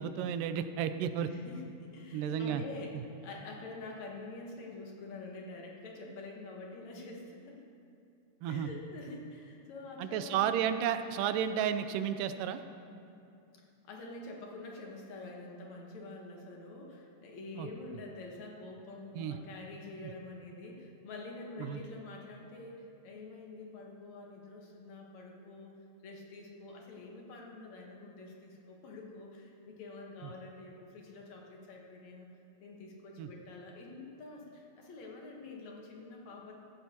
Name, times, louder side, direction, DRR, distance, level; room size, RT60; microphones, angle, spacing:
voice 1, 0.0-1.3 2.1-2.6 2.9-3.0 8.4-8.7 10.0-12.6 17.6-17.7 19.2-19.4 21.6-21.8 30.2-30.3 33.2-33.3, right 9 dB, 85° right, 10 dB, 2.2 m, -32 dB
voice 2, 1.3-3.0 3.2-7.6 8.5-10.5 13.8-25.7 26.0-32.3 32.6-36.5, left 3 dB, 65° left, -1 dB, 2.4 m, -47 dB
16.0 x 13.5 x 2.9 m, 2.6 s
omnidirectional pair, 3.8 m